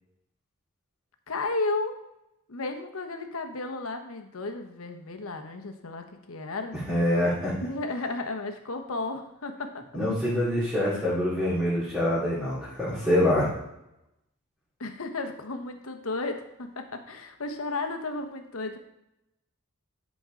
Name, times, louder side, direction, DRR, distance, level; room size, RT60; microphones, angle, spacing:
voice 1, 1.3-2.0 2.5-6.8 7.6-10.0 14.8-18.8, left 3 dB, 70° left, 5 dB, 1.0 m, -33 dB
voice 2, 6.9-7.5 9.9-13.5, left 1 dB, 5° right, -12 dB, 2.5 m, -25 dB
11.5 x 5.3 x 3.8 m, 0.87 s
head